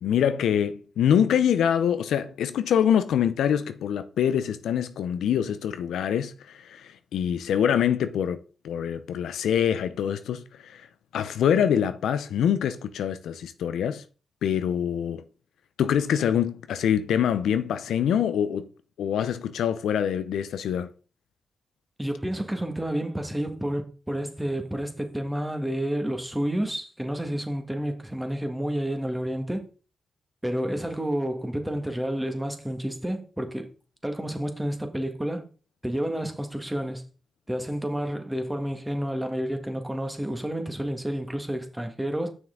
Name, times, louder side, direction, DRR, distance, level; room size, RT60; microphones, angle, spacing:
voice 1, 0.0-8.4 8.6-10.9 11.1-14.0 14.4-15.2 15.8-18.7 19.0-20.9, left 9 dB, 85° left, 0.5 m, -25 dB
voice 2, 22.0-29.7 30.4-33.7 34.0-35.5 35.8-37.0 37.5-42.3, right 1 dB, 10° right, 1.8 m, -30 dB
7.1 x 6.1 x 3.9 m
supercardioid pair, 50°, 0 cm